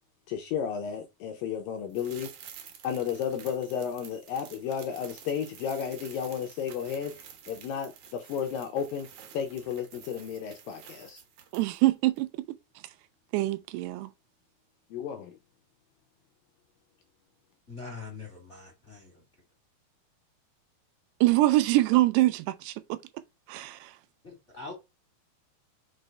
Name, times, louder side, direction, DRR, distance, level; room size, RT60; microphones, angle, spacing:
voice 1, 0.3-2.3 2.8-9.1 9.3-11.2 14.9-15.4, left 8 dB, 85° left, 2.1 m, -33 dB
sound 1, 1.9-11.9 12.2-12.3, right 8 dB, 65° right, 1.8 m, -50 dB
voice 2, 11.5-12.3 13.3-14.1 21.2-23.0 23.5-23.9, right 17 dB, 85° right, 2.6 m, -24 dB
voice 3, 17.7-19.2 24.2-24.7, left 4 dB, 35° left, 1.1 m, -43 dB
6.1 x 3.3 x 5.2 m
omnidirectional pair, 4.8 m